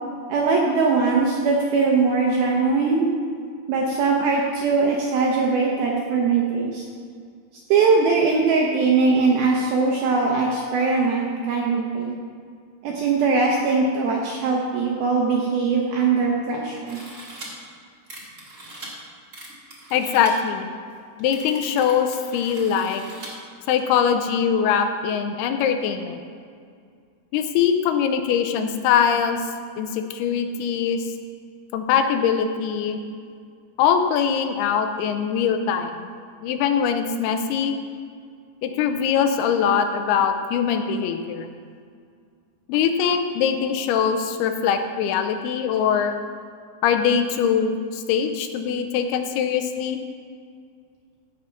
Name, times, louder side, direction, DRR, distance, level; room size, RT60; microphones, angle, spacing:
voice 1, 0.3-3.1 3.7-6.8 7.7-12.1 12.8-17.0, right 4 dB, 70° right, -1 dB, 2.4 m, -21 dB
sound 1, 16.9-17.5 18.1-18.9 19.3-20.3 20.9-21.0 21.2-23.3 23.8-23.9, right 2 dB, 30° right, 1.4 m, -41 dB
voice 2, 19.9-20.7 21.2-23.0 23.7-26.2 27.3-29.4 29.8-31.1 31.7-33.0 33.8-36.1 36.4-37.7 38.6-41.5 42.7-46.1 46.8-50.0, left 7 dB, 85° left, 6 dB, 2.4 m, -22 dB
16.0 x 5.8 x 5.7 m, 2.2 s
omnidirectional pair, 5.1 m